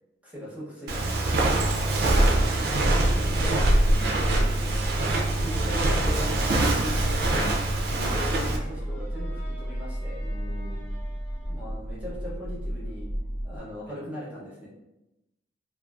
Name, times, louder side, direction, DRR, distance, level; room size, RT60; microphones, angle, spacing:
voice 1, 0.2-1.5 2.6-4.3 5.4-7.6 8.1-10.2 11.4-13.1 13.4-14.7, equal, 10° right, -7 dB, 0.7 m, -39 dB
Walk footsteps, 0.9-8.6, right 2 dB, 55° right, 0.3 m, -24 dB
sound 1, 1.1-13.6, equal, 25° left, 0.9 m, -33 dB
voice 2, 1.7-2.3 4.3-4.4 8.0-8.2 10.2-10.9 12.1-12.2 13.9-14.0, left 2 dB, 55° left, -3 dB, 0.6 m, -45 dB
sound 2, 4.2-11.7, left 2 dB, 75° left, 0.9 m, -46 dB
2.4 x 2.3 x 2.3 m, 0.94 s
head